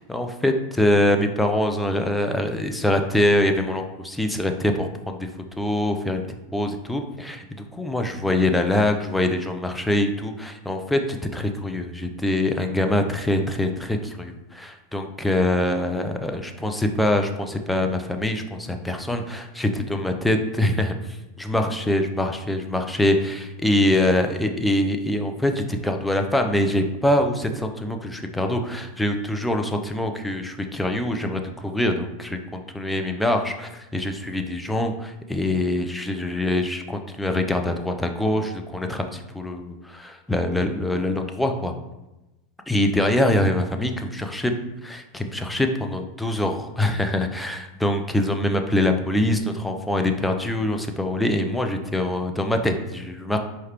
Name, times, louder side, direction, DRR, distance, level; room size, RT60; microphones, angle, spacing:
voice 1, 0.0-5.3 5.6-6.2 6.5-20.9 21.4-41.7 42.7-44.5 44.8-53.4, left 1 dB, 5° left, 5 dB, 0.5 m, -24 dB
4.7 x 3.3 x 3.0 m, 1.0 s
hypercardioid pair, 105°, 0 cm